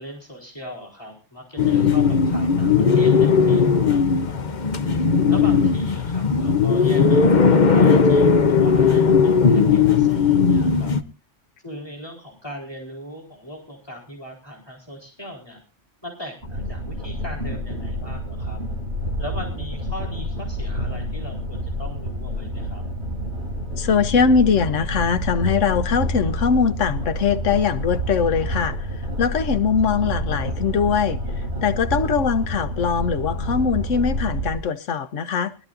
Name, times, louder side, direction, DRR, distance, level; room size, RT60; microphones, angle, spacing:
voice 1, 0.0-4.7 5.3-11.0 11.6-15.6 16.0-18.6 19.2-22.8, equal, 20° left, 4.2 m, -39 dB
sound 1, 1.6-11.0, left 5 dB, 40° left, 0.9 m, -17 dB
sound 2, 16.4-34.6, equal, 60° right, 3.7 m, -28 dB
voice 2, 23.8-28.7 29.2-31.2 31.6-35.5, left 6 dB, 90° left, 1.3 m, -21 dB
23.5 x 12.5 x 2.6 m
omnidirectional pair, 1.2 m